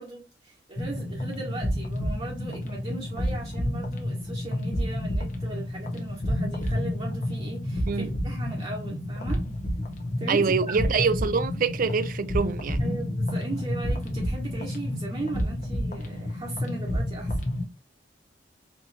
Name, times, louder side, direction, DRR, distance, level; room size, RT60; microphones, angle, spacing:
voice 1, 0.0-9.4 10.2-11.0 12.8-17.3, right 2 dB, 35° right, 1.3 m, -38 dB
sound 1, 0.8-17.7, left 1 dB, 45° left, 0.9 m, -30 dB
voice 2, 10.3-12.8, right 5 dB, 50° right, 0.5 m, -25 dB
4.3 x 2.8 x 2.7 m
head